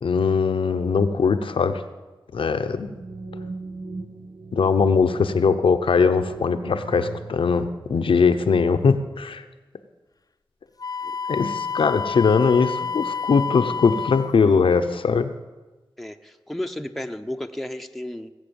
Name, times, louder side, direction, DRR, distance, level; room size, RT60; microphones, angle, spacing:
voice 1, 0.0-1.7 2.3-2.9 4.5-9.4 11.3-15.3, left 5 dB, 85° left, 9 dB, 0.8 m, -20 dB
sound 1, 2.3-8.8, right 3 dB, 75° right, 1.3 m, -40 dB
Wind instrument woodwind instrument, 10.8-14.4, left 5 dB, 45° left, 0.6 m, -29 dB
voice 2, 16.0-18.3, left 1 dB, ahead, 5 dB, 0.9 m, -33 dB
18.0 x 8.2 x 7.1 m, 1.2 s
cardioid pair, 50°, 9 cm